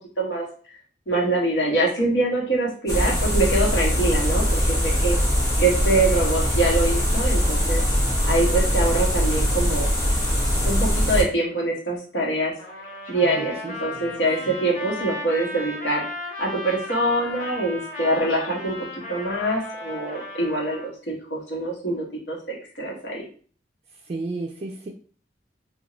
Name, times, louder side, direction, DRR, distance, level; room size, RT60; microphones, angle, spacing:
voice 1, 1.1-5.2 5.6-7.8 8.3-9.9 10.6-12.5 13.1-16.1 16.4-23.2, right 2 dB, 85° left, -3 dB, 1.0 m, -24 dB
sound 1, 2.9-11.2, equal, 20° left, 0.9 m, -22 dB
voice 2, 2.9-3.2 13.2-14.6 24.1-24.9, right 3 dB, 35° right, 0 dB, 0.3 m, -35 dB
Trumpet, 12.6-20.9, left 2 dB, 50° left, 0.9 m, -35 dB
2.4 x 2.2 x 2.9 m, 0.43 s
head